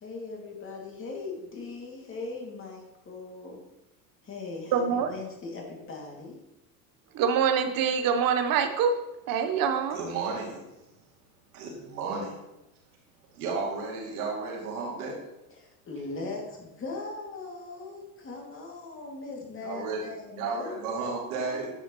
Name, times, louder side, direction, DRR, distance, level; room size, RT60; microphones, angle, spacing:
voice 1, 0.0-3.6 4.2-6.4 15.5-21.1 21.4-21.6, left 3 dB, 30° left, -1 dB, 2.4 m, -39 dB
voice 2, 4.7-5.1 7.1-9.0 9.3-10.0, right 7 dB, 50° right, 7 dB, 1.1 m, -25 dB
voice 3, 9.9-10.6 11.5-12.3 13.3-15.2 19.6-20.0 20.4-21.7, right 4 dB, 90° right, -3 dB, 2.6 m, -33 dB
9.8 x 6.3 x 3.1 m, 0.95 s
supercardioid pair, 105°, 43 cm